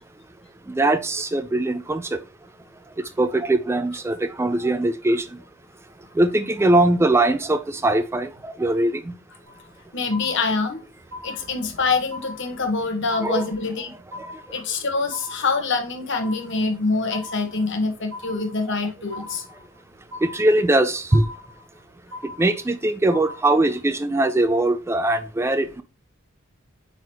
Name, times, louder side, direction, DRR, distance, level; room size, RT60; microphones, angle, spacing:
voice 1, 0.7-2.2 3.2-5.3 6.2-9.1 13.2-13.5 20.2-21.2 22.4-25.8, right 2 dB, 15° right, 0.3 m, -21 dB
sound 1, 9.5-9.8 10.1-10.8 11.1-11.8 12.1-12.8 13.1-13.8 14.1-14.8 15.1-15.8 16.1-16.8 17.1-17.8 18.1-18.8 19.1-19.8 20.1-20.8 21.1-21.8 22.1-22.8 23.1-23.8, left 2 dB, 75° right, 1.2 m, -40 dB
voice 2, 9.9-10.8 11.2-13.9 14.5-19.4, left 3 dB, 60° left, 1.3 m, -25 dB
8.9 x 3.9 x 3.0 m
head